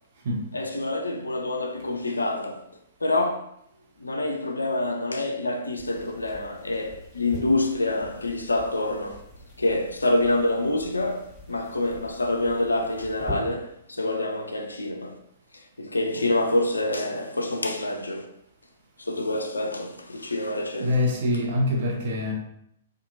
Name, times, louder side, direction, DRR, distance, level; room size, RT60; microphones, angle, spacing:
voice 1, 0.5-2.6 3.0-3.5 4.0-9.2 9.6-15.2 15.5-18.3 19.0-21.1, left 2 dB, 75° left, 0.3 m, -27 dB
sound 1, 5.8-13.3, left 1 dB, 15° right, 1.3 m, -43 dB
voice 2, 20.8-22.3, left 1 dB, 45° right, 0.7 m, -25 dB
2.8 x 2.3 x 2.6 m
figure-of-eight pair, 110°, 0 cm